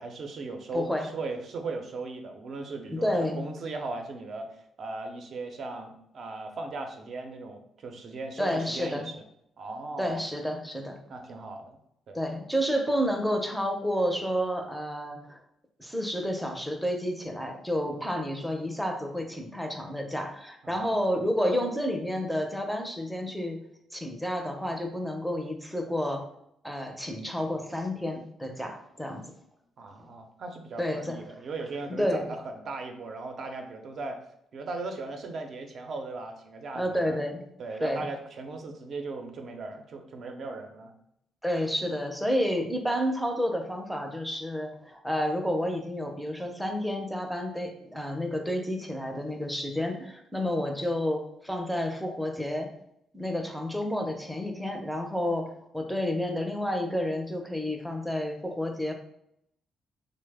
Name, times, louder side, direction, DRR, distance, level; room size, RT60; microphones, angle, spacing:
voice 1, 0.0-9.2 9.6-10.2 11.1-11.8 12.1-12.2 20.6-21.0 29.8-34.2 34.5-37.2 37.6-40.9, right 3 dB, 55° right, 4 dB, 0.5 m, -38 dB
voice 2, 0.7-1.1 2.9-3.5 8.4-9.1 10.0-11.0 12.1-15.4 15.8-23.6 23.9-26.3 26.6-29.2 30.8-31.2 32.0-32.3 36.7-37.4 37.8-38.0 41.4-52.7 53.1-58.9, equal, ahead, 3 dB, 0.5 m, -30 dB
3.1 x 2.0 x 3.4 m, 0.75 s
cardioid pair, 90°, 0 cm